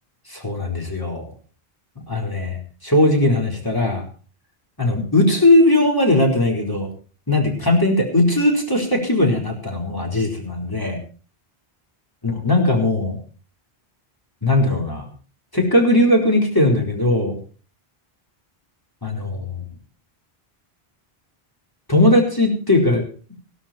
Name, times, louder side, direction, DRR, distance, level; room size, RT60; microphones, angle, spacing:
voice 1, 0.3-1.2 2.1-2.6 2.8-4.0 4.8-6.9 7.3-11.0 12.2-13.2 14.4-15.1 15.5-17.4 19.0-19.6 21.9-23.0, left 1 dB, 20° left, 0 dB, 4.5 m, -18 dB
16.5 x 13.0 x 4.5 m, 0.39 s
omnidirectional pair, 1.0 m